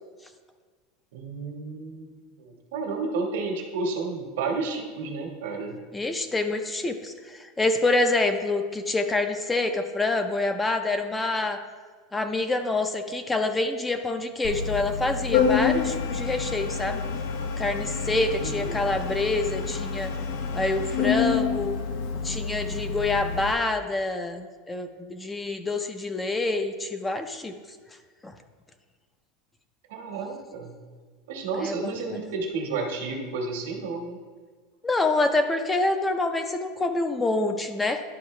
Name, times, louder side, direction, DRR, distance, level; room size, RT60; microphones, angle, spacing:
voice 1, 1.1-2.1 2.4-5.8 18.4-18.8 29.9-30.8 31.3-34.2, right 3 dB, 80° right, 2 dB, 1.4 m, -31 dB
voice 2, 5.9-11.6 12.1-17.0 17.6-20.1 20.5-21.8 22.2-27.5 28.2-28.3 31.6-32.2 34.8-38.0, left 2 dB, 10° left, 7 dB, 0.5 m, -26 dB
Organ, 14.4-23.5, left 6 dB, 65° left, 0.7 m, -28 dB
11.5 x 4.5 x 3.2 m, 1.5 s
supercardioid pair, 145°, 0 cm